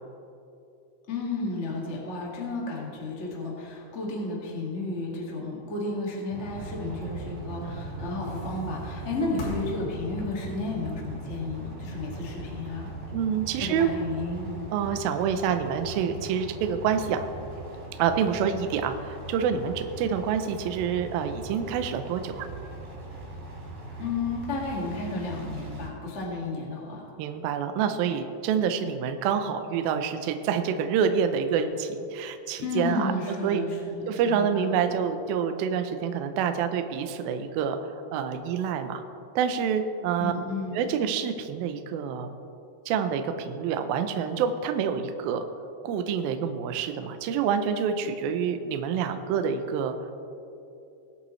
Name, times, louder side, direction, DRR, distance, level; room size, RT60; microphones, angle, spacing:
voice 1, 1.1-12.9 13.6-14.5 24.0-27.1 32.6-34.9 40.2-40.8, left 2 dB, 80° left, -3 dB, 0.6 m, -32 dB
sound 1, 6.3-25.9, right 2 dB, 55° right, 4.6 m, -40 dB
sound 2, 8.2-10.4 11.6-13.0, left 1 dB, 65° left, 3.4 m, -42 dB
voice 2, 13.1-13.9 14.7-17.3 18.0-22.5 27.2-33.1 33.4-33.6 34.1-39.0 39.4-40.3 40.7-42.3 42.9-45.5 45.8-50.0, right 7 dB, 90° right, 7 dB, 2.0 m, -27 dB
21.0 x 8.3 x 3.2 m, 2.7 s
omnidirectional pair, 5.2 m